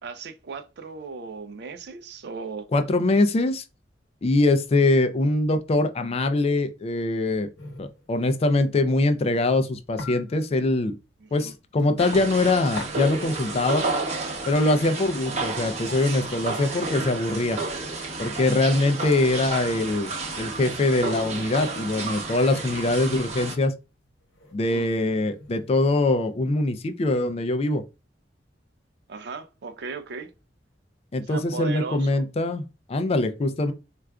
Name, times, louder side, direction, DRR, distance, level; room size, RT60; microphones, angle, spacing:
voice 1, 0.0-2.7 11.2-11.5 24.6-24.9 29.1-30.3 31.3-32.2, right 4 dB, 65° right, 0.4 m, -37 dB
voice 2, 2.7-3.6 4.2-7.5 7.8-11.0 11.3-13.9 14.5-17.6 18.2-23.7 24.5-27.8 31.1-32.6 32.9-33.7, left 2 dB, 35° left, 0.4 m, -23 dB
sound 1, 7.6-27.1, left 2 dB, 80° left, 0.9 m, -46 dB
sound 2, 12.0-23.5, right 3 dB, 40° right, 0.8 m, -31 dB
4.5 x 2.4 x 2.2 m
head